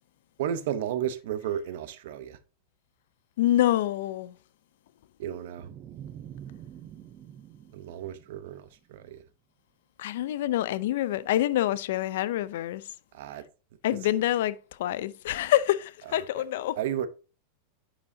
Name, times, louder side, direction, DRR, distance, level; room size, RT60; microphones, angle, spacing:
voice 1, 0.4-2.4 5.2-5.7 7.7-9.2 13.1-13.4 16.2-16.4 16.8-17.1, right 10 dB, 65° right, 0.7 m, -33 dB
voice 2, 3.4-4.3 10.0-12.8 13.8-16.8, left 13 dB, 70° left, 0.4 m, -26 dB
sound 1, 5.6-8.8, right 10 dB, 30° right, 0.4 m, -46 dB
8.5 x 5.0 x 2.7 m
supercardioid pair, 145°, 0 cm